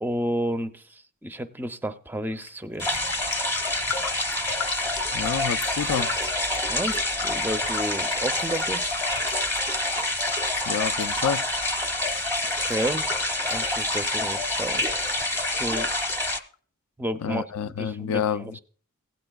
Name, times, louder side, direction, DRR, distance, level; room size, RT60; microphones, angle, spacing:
voice 1, 0.0-2.9 6.7-7.0 7.2-8.8 12.6-13.1 13.4-14.8 15.5-15.9 17.0-18.6, right 1 dB, 10° right, 0.5 m, -31 dB
Raindrop, 2.3-2.5 2.8-14.9 15.1-16.1 16.5-16.6, left 6 dB, 90° left, 0.9 m, -39 dB
sound 1, 2.8-16.4, left 2 dB, 10° left, 0.8 m, -27 dB
voice 2, 5.1-6.1 10.7-11.5 17.2-18.6, left 7 dB, 70° left, 0.4 m, -28 dB
16.5 x 8.8 x 2.3 m
head